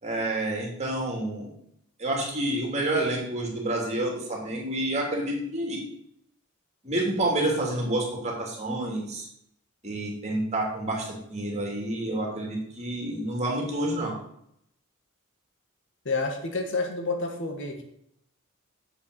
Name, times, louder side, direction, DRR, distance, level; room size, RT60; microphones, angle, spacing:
voice 1, 0.0-1.5 2.0-5.8 6.8-9.3 9.8-14.1, right 1 dB, 30° right, 0 dB, 3.2 m, -29 dB
voice 2, 16.1-17.8, left 3 dB, 60° left, 3 dB, 2.0 m, -29 dB
7.5 x 7.1 x 8.0 m, 0.74 s
head